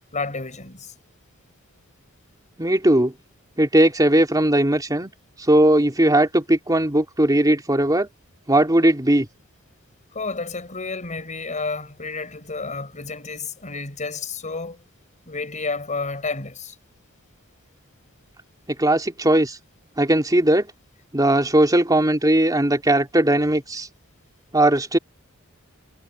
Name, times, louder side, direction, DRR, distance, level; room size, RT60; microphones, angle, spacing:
voice 1, 0.1-0.9 10.1-14.8 15.3-16.7, left 4 dB, 35° left, 5.0 m, -31 dB
voice 2, 2.6-3.1 3.6-5.1 5.5-8.1 8.5-9.3 18.8-19.6 20.0-20.7 21.1-23.9 24.5-25.0, right 1 dB, 20° right, 3.2 m, -18 dB
head